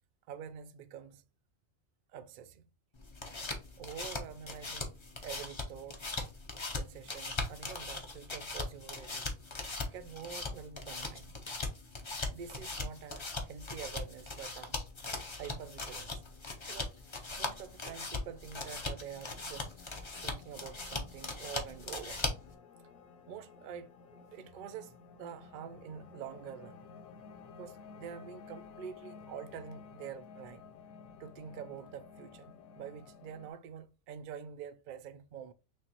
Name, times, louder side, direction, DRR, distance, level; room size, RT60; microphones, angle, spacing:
voice 1, 0.3-1.2 2.1-2.7 3.8-4.9 5.2-6.1 6.7-9.3 9.9-11.4 12.3-14.8 15.4-16.2 16.7-17.0 17.4-19.7 20.2-22.2 23.3-26.9 27.6-30.7 31.2-35.5, right 8 dB, 80° right, 0.4 m, -46 dB
sound 1, 3.0-22.5, left 3 dB, 30° left, 0.6 m, -40 dB
sound 2, 14.7-33.5, left 5 dB, 85° left, 1.1 m, -55 dB
6.2 x 2.5 x 2.9 m
omnidirectional pair, 1.4 m